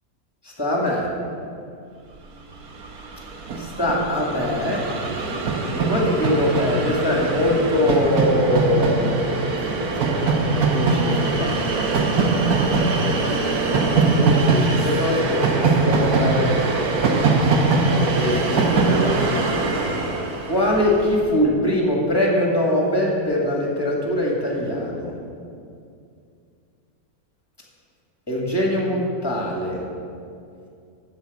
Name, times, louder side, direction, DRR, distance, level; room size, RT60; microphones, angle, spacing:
voice 1, 0.4-1.1 3.6-4.9 5.7-9.1 10.6-11.6 14.0-16.6 18.2-19.5 20.4-25.1 28.3-29.8, left 1 dB, 15° left, -3 dB, 2.0 m, -22 dB
Train, 2.5-2.6 2.8-21.2, right 3 dB, 75° right, 1.5 m, -22 dB
8.0 x 7.1 x 8.4 m, 2.5 s
omnidirectional pair, 1.6 m